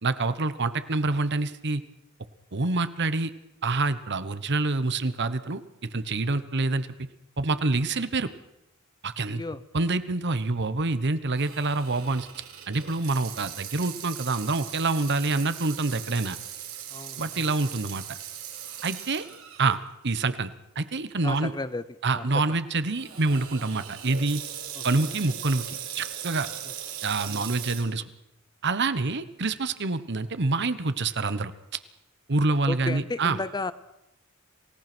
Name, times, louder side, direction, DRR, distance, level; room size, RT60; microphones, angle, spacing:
voice 1, 0.0-1.8 2.5-3.3 3.6-7.1 7.4-8.3 9.0-9.4 9.7-12.3 12.7-16.4 17.2-18.0 18.8-19.3 19.6-19.8 20.0-21.5 22.0-24.4 24.8-26.5 27.0-28.0 28.6-31.5 32.3-33.4, right 3 dB, 55° right, 13 dB, 1.1 m, -26 dB
voice 2, 9.3-9.6 16.9-17.5 21.2-21.8 22.1-22.3 24.8-25.2 27.3-27.5 32.7-33.7, left 2 dB, 20° left, 15 dB, 0.7 m, -34 dB
Water tap faucet / Sink (filling or washing), 11.4-19.8 20.2-20.3 21.1-21.4 22.9-27.8, right 9 dB, 80° right, 4.6 m, -39 dB
27.5 x 17.5 x 6.2 m, 0.89 s
head